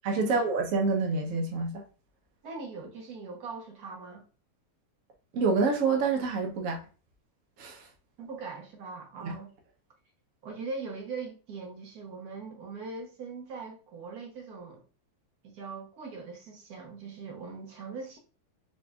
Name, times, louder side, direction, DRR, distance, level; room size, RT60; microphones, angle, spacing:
voice 1, 0.0-1.8 5.3-6.8 7.6-7.9 9.2-9.3, right 4 dB, 75° right, 0.7 m, -27 dB
voice 2, 2.4-4.2 8.2-9.5 10.4-14.8 15.4-18.2, right 4 dB, 60° right, 1.1 m, -41 dB
4.2 x 3.1 x 2.3 m
omnidirectional pair, 2.3 m